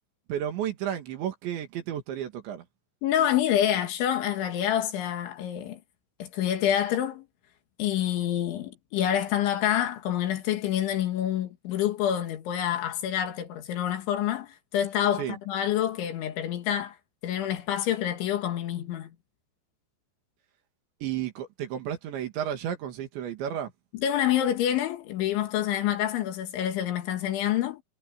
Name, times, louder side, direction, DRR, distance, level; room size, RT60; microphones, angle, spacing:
voice 1, 0.3-2.7 15.2-15.4 21.0-23.7, right 10 dB, 70° right, 4.3 m, -32 dB
voice 2, 3.0-5.8 6.2-7.3 7.8-17.0 17.2-19.1 23.9-27.8, left 11 dB, 75° left, 4.1 m, -27 dB
omnidirectional pair, 5.7 m